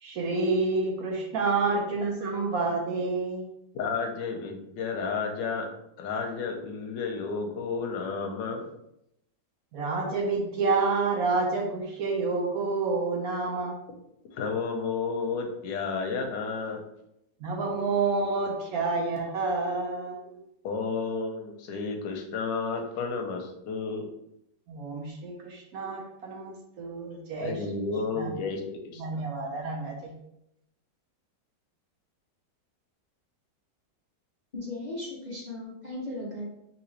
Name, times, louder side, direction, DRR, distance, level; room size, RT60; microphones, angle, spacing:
voice 1, 0.0-3.5 9.7-13.8 17.4-20.4 24.7-27.6 28.2-28.3 29.0-30.1, right 3 dB, 65° right, 0 dB, 1.0 m, -29 dB
voice 2, 3.7-5.7 6.0-8.7 14.3-16.8 20.6-24.1 27.4-29.2, left 4 dB, 85° left, 4 dB, 1.3 m, -32 dB
voice 3, 34.5-36.4, left 2 dB, 55° left, -6 dB, 0.5 m, -36 dB
3.8 x 2.9 x 3.1 m, 0.80 s
omnidirectional pair, 1.9 m